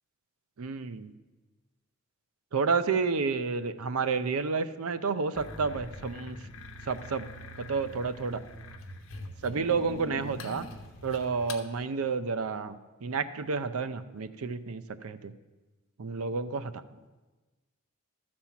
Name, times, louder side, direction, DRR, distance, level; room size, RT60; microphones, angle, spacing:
voice 1, 0.6-1.1 2.5-6.4 6.9-7.2 7.6-8.4 9.4-10.7 11.0-12.7 13.0-15.3 16.0-16.8, right 4 dB, 75° right, 12 dB, 0.6 m, -30 dB
sound 1, 5.3-11.6, left 1 dB, 60° left, 0.9 m, -43 dB
13.0 x 4.3 x 7.2 m, 1.2 s
head